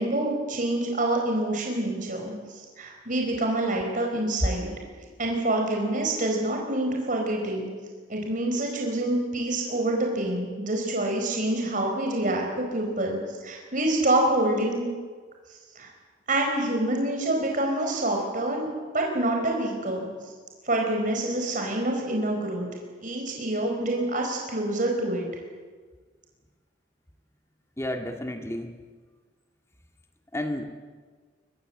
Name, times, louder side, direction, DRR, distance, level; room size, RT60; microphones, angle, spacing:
voice 1, 0.0-4.7 5.2-7.7 8.1-14.8 15.7-15.9 16.3-20.1 20.6-22.7 23.0-25.2, right 1 dB, 50° right, 1 dB, 4.7 m, -27 dB
voice 2, 27.8-28.7 30.3-30.7, left 1 dB, 15° left, 4 dB, 1.9 m, -31 dB
23.0 x 22.0 x 7.8 m, 1.5 s
head